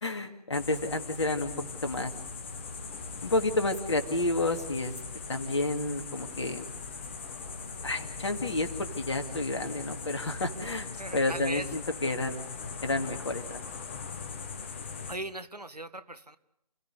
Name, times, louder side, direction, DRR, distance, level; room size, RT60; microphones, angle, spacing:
voice 1, 0.0-1.5 1.8-2.1 3.2-4.9 5.3-6.7 7.8-12.4 12.8-13.6, left 2 dB, 45° left, 6 dB, 2.5 m, -30 dB
sound 1, 0.5-15.2, left 4 dB, 20° left, 1.3 m, -40 dB
voice 2, 11.0-11.7 15.1-16.4, right 1 dB, 80° right, 13 dB, 1.7 m, -38 dB
30.0 x 16.5 x 8.1 m, 0.81 s
figure-of-eight pair, 150°, 20 cm